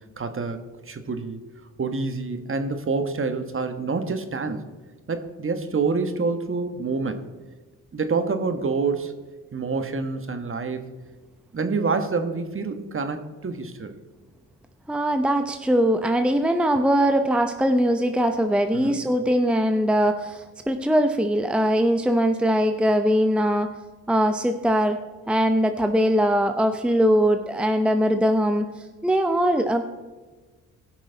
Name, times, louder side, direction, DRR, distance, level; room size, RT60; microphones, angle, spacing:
voice 1, 0.2-0.6 0.9-1.4 1.8-4.7 5.1-7.2 7.9-9.1 9.5-10.9 11.5-13.9 18.7-19.0, right 4 dB, 35° right, 8 dB, 1.4 m, -27 dB
voice 2, 14.9-23.7 24.1-25.0 25.3-28.7 29.0-29.8, equal, 5° right, 6 dB, 0.7 m, -21 dB
17.0 x 6.2 x 4.0 m, 1.3 s
supercardioid pair, 55°, 35 cm